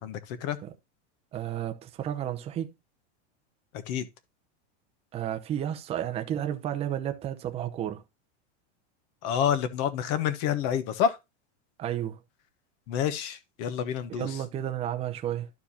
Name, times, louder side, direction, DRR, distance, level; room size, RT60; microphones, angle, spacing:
voice 1, 0.0-0.6 3.9-4.1 9.2-11.2 12.9-14.4, left 8 dB, 40° left, 1.2 m, -28 dB
voice 2, 1.3-2.7 5.1-8.0 11.8-12.2 14.1-15.5, right 10 dB, 15° right, 0.7 m, -32 dB
13.0 x 4.6 x 2.7 m
supercardioid pair, 165°, 35 cm